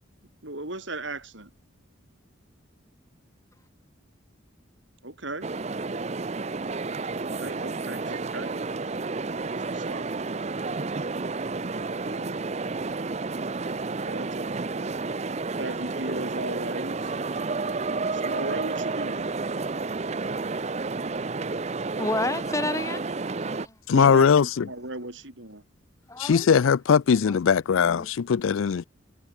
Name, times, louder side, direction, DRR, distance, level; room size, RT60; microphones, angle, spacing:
voice 1, 0.4-1.5 5.0-5.5 7.2-8.6 9.5-10.1 11.9-12.4 13.8-14.5 15.6-17.1 18.1-19.2 23.9-24.3 24.6-25.6, right 2 dB, 65° right, 5.0 m, -36 dB
sound 1, 5.4-23.7, right 3 dB, 35° right, 0.6 m, -31 dB
voice 2, 22.0-23.0 23.4-23.7 26.1-26.5 27.3-27.4 27.9-28.1, left 2 dB, 15° left, 1.4 m, -30 dB
voice 3, 23.9-24.7 26.2-28.8, left 6 dB, 80° left, 0.4 m, -20 dB
head